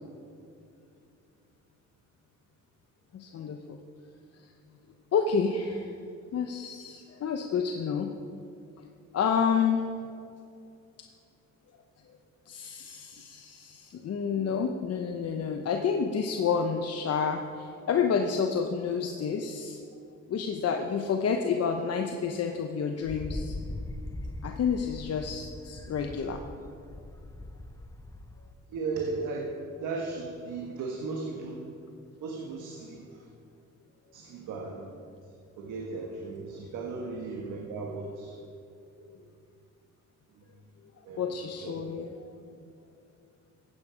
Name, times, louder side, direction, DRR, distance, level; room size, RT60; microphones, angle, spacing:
voice 1, 3.1-3.8 5.1-5.9 6.3-8.1 9.1-9.8 12.5-19.8 20.3-23.5 24.4-26.4 39.1-39.2 41.2-42.1, left 6 dB, 55° left, 4 dB, 0.9 m, -29 dB
Wind, 23.0-28.5, left 1 dB, 10° left, 0.7 m, -40 dB
voice 2, 28.7-29.5 29.8-31.7 32.2-33.3 34.1-34.9 35.6-38.3 39.3-39.4 41.0-42.3, right 3 dB, 80° right, 0 dB, 1.4 m, -36 dB
15.0 x 8.6 x 5.0 m, 2.5 s
cardioid pair, 90°, 30 cm